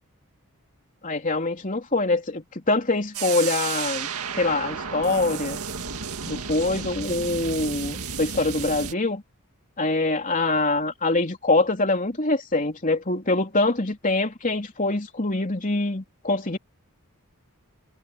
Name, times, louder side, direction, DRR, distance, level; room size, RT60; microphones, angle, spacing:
voice 1, 1.0-4.1 4.4-5.6 6.3-9.2 9.8-16.6, left 2 dB, 40° left, 3.4 m, -24 dB
sound 1, 3.1-8.9, right 6 dB, 85° right, 2.0 m, -32 dB
head